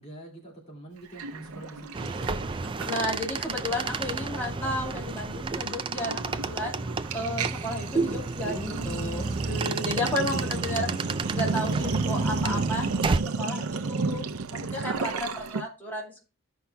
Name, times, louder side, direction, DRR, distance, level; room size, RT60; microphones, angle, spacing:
voice 1, 0.0-2.4 8.4-10.6, right 1 dB, 30° left, -3 dB, 2.3 m, -43 dB
Sink (filling or washing), 1.2-3.4 3.6-3.9 4.2-15.6, right 4 dB, 90° right, 0.6 m, -33 dB
sound 1, 1.9-13.2, right 3 dB, 25° right, 0.3 m, -31 dB
voice 2, 2.8-6.9 7.1-10.9 11.3-16.2, left 1 dB, 10° left, -4 dB, 2.6 m, -33 dB
15.0 x 5.6 x 2.3 m, 0.32 s
head